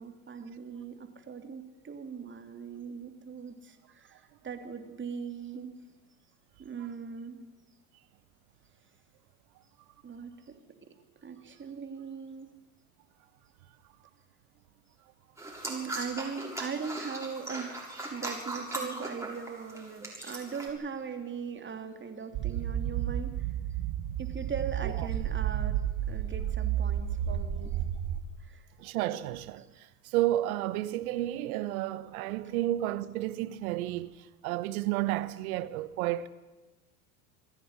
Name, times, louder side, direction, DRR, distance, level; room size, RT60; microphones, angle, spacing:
voice 1, 0.0-5.8 6.6-7.4 10.0-10.6 10.8-10.9 11.2-12.6 15.7-23.5 24.2-25.8 26.1-27.7 28.4-28.7 29.6-29.7 32.4-32.6, right 6 dB, 25° right, 3.2 m, -40 dB
sound 1, 15.4-20.7, right 2 dB, 5° right, 6.8 m, -39 dB
sound 2, 22.3-28.2, right 11 dB, 55° right, 1.9 m, -31 dB
voice 2, 28.8-36.3, right 14 dB, 75° right, 1.3 m, -32 dB
27.5 x 10.5 x 9.7 m
hypercardioid pair, 85°, 43 cm